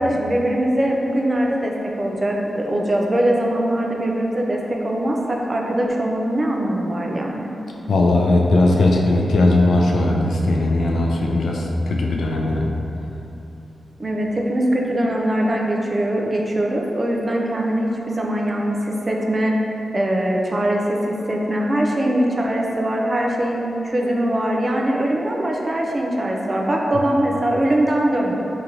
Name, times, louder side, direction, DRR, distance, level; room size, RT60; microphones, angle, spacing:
voice 1, 0.0-7.5 14.0-28.4, right 1 dB, 30° right, -1 dB, 0.4 m, -22 dB
voice 2, 7.9-12.8, left 2 dB, 90° left, -1 dB, 0.4 m, -18 dB
5.0 x 2.9 x 2.7 m, 3.0 s
wide cardioid pair, 125°, 0 cm